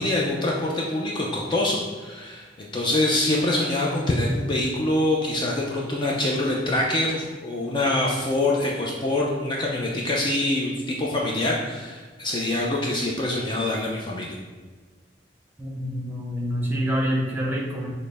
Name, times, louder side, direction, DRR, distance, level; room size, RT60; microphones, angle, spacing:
voice 1, 0.0-14.4, left 1 dB, 25° left, -2 dB, 0.4 m, -25 dB
voice 2, 15.6-17.9, equal, 10° right, -3 dB, 0.8 m, -26 dB
6.2 x 2.1 x 3.3 m, 1.4 s
head